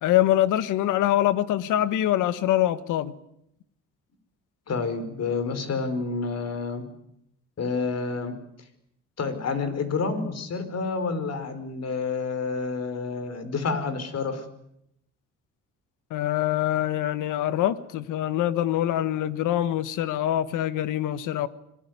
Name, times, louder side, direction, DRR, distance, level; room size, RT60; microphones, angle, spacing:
voice 1, 0.0-3.1 16.1-21.5, left 12 dB, 90° left, 14 dB, 1.5 m, -24 dB
voice 2, 4.7-6.8 7.6-8.3 9.2-14.4, left 4 dB, 55° left, 10 dB, 5.1 m, -29 dB
26.0 x 21.0 x 9.6 m, 0.78 s
cardioid pair, 90°, 30 cm